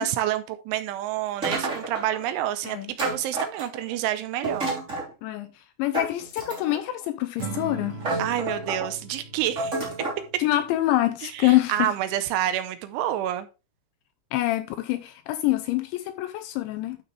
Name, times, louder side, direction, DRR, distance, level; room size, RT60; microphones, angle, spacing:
voice 1, 0.0-4.7 8.2-9.8 11.3-13.5, right 12 dB, 80° right, 3.0 m, -28 dB
sound 1, 1.4-2.2 3.0-3.9 4.4-5.1 5.9-6.9 7.5-7.6 8.0-8.9 9.6-10.2, right 2 dB, 20° right, 2.6 m, -30 dB
voice 2, 5.2-8.0 10.4-11.9 14.3-17.0, left 16 dB, 80° left, 2.7 m, -26 dB
Acoustic guitar / Strum, 7.4-10.7, right 4 dB, 60° right, 2.5 m, -39 dB
12.0 x 5.5 x 3.2 m
omnidirectional pair, 5.7 m